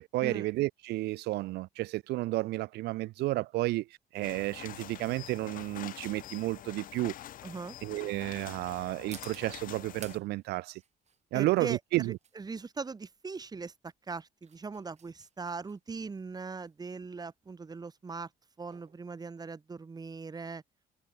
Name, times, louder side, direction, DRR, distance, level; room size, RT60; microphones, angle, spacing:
voice 1, 0.0-3.9 4.1-7.1 7.8-10.8 11.3-12.2, right 18 dB, 80° right, 0.6 m, -32 dB
sound 1, 3.8-20.1, right 7 dB, 40° right, 7.0 m, -57 dB
sound 2, 4.2-10.2, left 12 dB, 55° left, 0.8 m, -46 dB
voice 2, 7.4-7.8 11.3-18.3 18.6-20.6, right 4 dB, 25° right, 2.5 m, -40 dB
cardioid pair, 110°, 17 cm